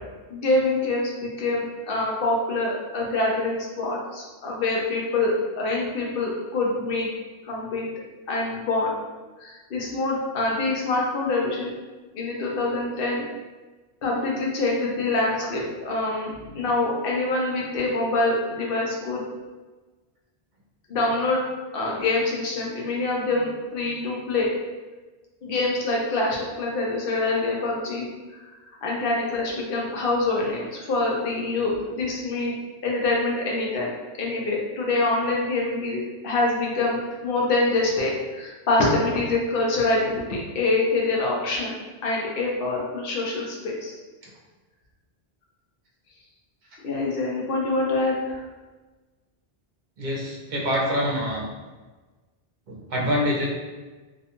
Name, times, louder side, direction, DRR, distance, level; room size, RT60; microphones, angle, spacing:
voice 1, 0.3-7.1 7.4-7.9 8.3-8.9 9.4-11.7 12.1-13.3 14.0-19.3 20.9-21.4 21.7-24.5 25.4-28.4 28.8-32.6 32.8-33.9 34.2-41.8 42.0-43.9 46.8-48.4, left 2 dB, 65° left, -2 dB, 0.7 m, -25 dB
voice 2, 50.0-51.5 52.7-53.5, equal, 55° right, -3 dB, 0.7 m, -25 dB
2.5 x 2.2 x 2.7 m, 1.3 s
omnidirectional pair, 1.1 m